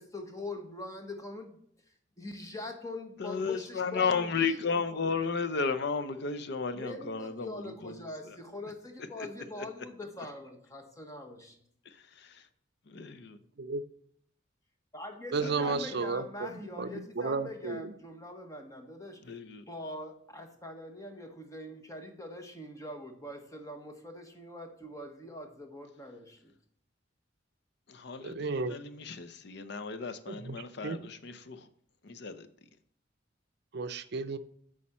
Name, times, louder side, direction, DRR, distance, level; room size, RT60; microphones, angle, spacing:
voice 1, 0.0-1.6 2.2-4.3 4.6-4.7 6.7-11.6 14.9-19.2 19.7-26.5, left 1 dB, 20° left, 1.2 m, -43 dB
voice 2, 3.2-8.0 8.3-8.4 9.2-9.3 9.5-9.7 11.9-12.4 13.0-13.2 15.4-15.8 19.2-19.6 27.9-31.7 32.0-32.5, left 5 dB, 65° left, 0.6 m, -34 dB
voice 3, 15.3-17.9 28.2-28.8 30.3-31.0 33.7-34.4, right 4 dB, 60° right, 0.5 m, -33 dB
8.5 x 4.9 x 4.3 m
head